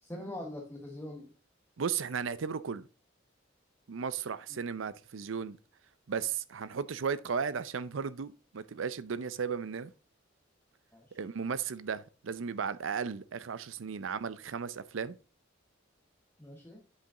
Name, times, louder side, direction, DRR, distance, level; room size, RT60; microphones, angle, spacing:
voice 1, 0.0-1.3 10.9-11.2 16.4-16.8, left 1 dB, 10° left, 1.0 m, -43 dB
voice 2, 1.8-2.9 3.9-5.6 6.1-9.9 11.1-15.2, right 6 dB, 90° right, 0.5 m, -35 dB
8.4 x 5.2 x 3.7 m
head